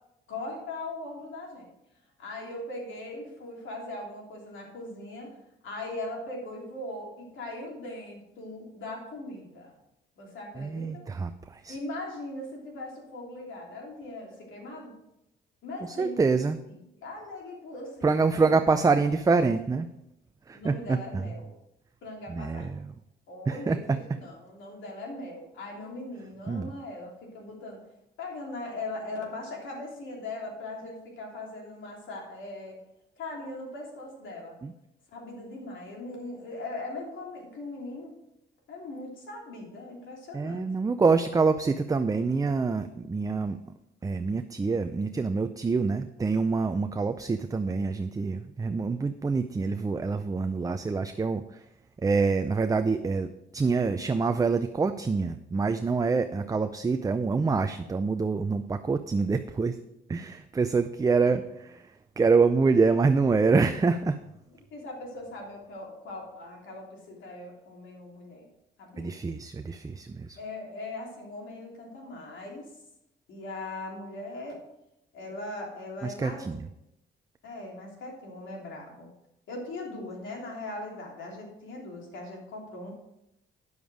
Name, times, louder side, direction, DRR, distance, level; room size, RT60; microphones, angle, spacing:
voice 1, 0.3-1.7 2.2-5.4 5.6-9.7 10.2-11.0 11.7-14.9 15.6-16.3 16.7-18.6 18.8-19.0 20.5-21.5 22.0-22.7 23.3-27.8 28.2-32.8 33.2-34.6 35.1-38.2 38.7-40.6 64.7-68.5 68.8-69.1 70.4-72.7 73.3-74.6 75.1-76.4 77.4-79.1 79.5-82.9, left 2 dB, 75° left, -1 dB, 3.2 m, -40 dB
voice 2, 10.6-11.8 16.0-16.6 18.0-19.9 20.5-21.4 22.3-22.9 23.5-24.2 26.5-26.7 34.6-34.7 40.3-43.6 44.0-51.6 52.0-59.8 60.1-64.2 69.0-70.4 76.0-76.7, right 4 dB, 15° right, 8 dB, 0.4 m, -26 dB
9.5 x 7.0 x 4.9 m, 0.85 s
cardioid pair, 90°, 20 cm